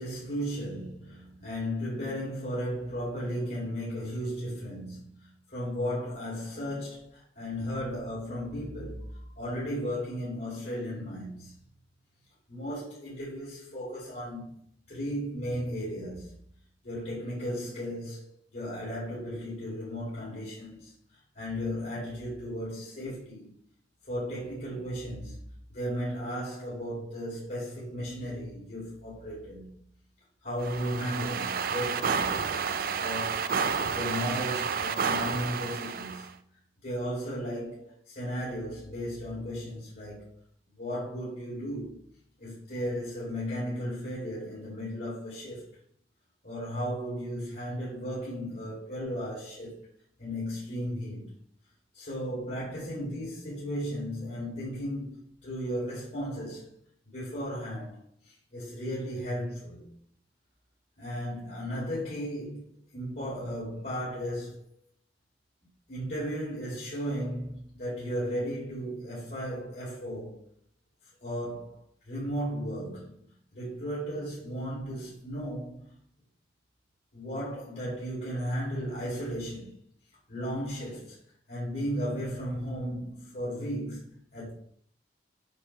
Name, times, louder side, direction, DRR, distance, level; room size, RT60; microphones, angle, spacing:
voice 1, 0.0-11.6 12.5-14.6 14.9-16.3 16.8-23.5 24.0-25.4 25.7-29.7 30.4-32.5 33.0-36.3 36.8-40.3 40.7-42.0 42.4-45.7 46.4-49.8 50.2-51.3 51.9-56.7 57.1-59.9 61.0-64.6 65.9-70.4 71.2-71.8 72.0-73.2 73.5-76.0 77.1-79.7 80.3-81.2 81.5-84.5, equal, 55° left, 2.9 m, -35 dB
sound 1, 30.6-36.3, right 6 dB, 55° right, 0.5 m, -30 dB
7.2 x 6.2 x 3.4 m
head